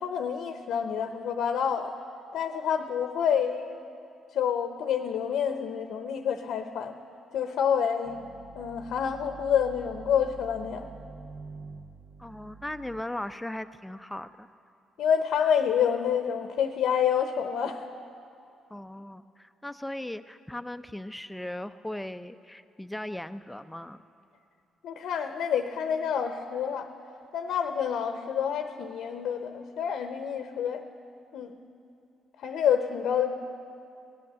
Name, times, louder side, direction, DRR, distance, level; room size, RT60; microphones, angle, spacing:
voice 1, 0.0-1.9 2.3-3.8 4.3-6.9 7.3-8.2 8.6-10.9 15.0-17.8 24.8-26.9 27.3-30.8 31.3-31.5 32.4-33.4, left 8 dB, 80° left, 7 dB, 0.7 m, -28 dB
sound 1, 8.0-13.0, right 4 dB, 55° right, 0.7 m, -46 dB
voice 2, 12.2-14.5 18.7-24.0, left 1 dB, 5° left, 11 dB, 0.5 m, -38 dB
18.0 x 9.4 x 7.5 m, 2.6 s
cardioid pair, 90°, 0 cm